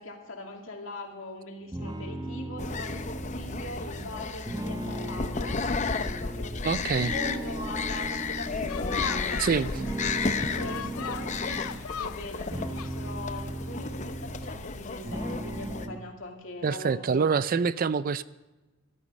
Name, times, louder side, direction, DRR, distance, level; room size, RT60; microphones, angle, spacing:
voice 1, 0.0-9.7 10.0-17.2, left 2 dB, 65° left, 1 dB, 2.5 m, -41 dB
sound 1, 1.7-6.6 7.0-9.3 9.7-11.9 12.3-14.8 15.1-16.0, right 1 dB, 20° right, 0.9 m, -37 dB
sound 2, 2.6-15.9, left 4 dB, 35° left, 0.6 m, -33 dB
voice 2, 6.6-7.1 9.4-9.7 16.6-18.2, right 5 dB, 40° right, 16 dB, 0.4 m, -25 dB
sound 3, 8.7-13.7, left 8 dB, 90° left, 0.5 m, -40 dB
14.0 x 13.0 x 5.2 m, 1.1 s
head